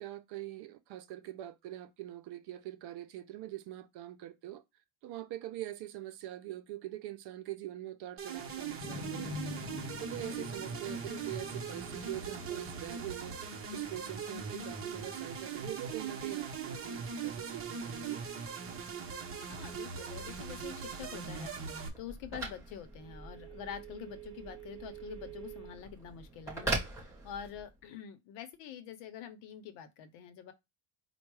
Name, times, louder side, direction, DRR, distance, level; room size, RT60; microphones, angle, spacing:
voice 1, 0.0-4.6 5.0-9.6 10.0-13.4 13.7-18.3, right 14 dB, 55° right, 0.7 m, -43 dB
sound 1, 8.2-21.9, right 6 dB, 30° right, 0.9 m, -40 dB
sound 2, 8.8-15.4, left 5 dB, 30° left, 0.4 m, -47 dB
voice 2, 19.5-21.5 22.0-30.5, left 9 dB, 65° left, 0.9 m, -46 dB
Telephone, 20.4-27.8, right 3 dB, 5° right, 2.9 m, -42 dB
4.5 x 2.3 x 4.7 m
cardioid pair, 155°, 47 cm